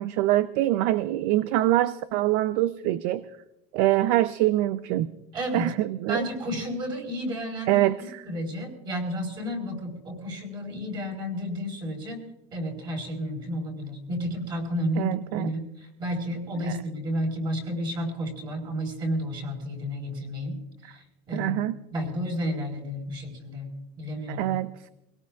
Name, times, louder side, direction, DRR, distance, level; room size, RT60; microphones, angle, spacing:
voice 1, 0.0-3.2 3.7-5.1 5.5-6.2 7.7-8.2 15.0-15.5 16.7-16.8 20.8-20.9 21.3-21.8 24.3-24.7, right 15 dB, 65° right, 14 dB, 0.5 m, -24 dB
voice 2, 5.3-5.7 6.1-7.9 8.2-12.2 12.5-20.6 20.8-21.6 21.9-24.5, equal, 30° right, 1 dB, 4.3 m, -31 dB
24.5 x 18.0 x 2.4 m, 0.93 s
cardioid pair, 160°, 14 cm